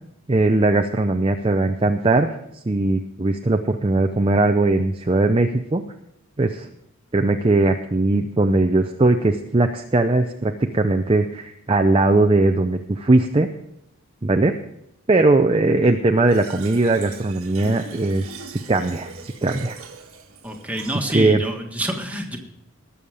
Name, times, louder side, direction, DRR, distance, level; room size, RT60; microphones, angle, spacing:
voice 1, 0.3-2.3 2.7-5.8 6.4-6.7 7.1-13.5 14.2-14.5 15.1-19.8 21.1-21.4, right 2 dB, 25° right, 5 dB, 0.6 m, -19 dB
Fill (with liquid), 16.3-21.3, right 4 dB, 85° right, 1.6 m, -40 dB
voice 2, 20.4-22.4, right 1 dB, 5° right, 2 dB, 1.6 m, -27 dB
19.5 x 7.2 x 4.9 m, 0.76 s
head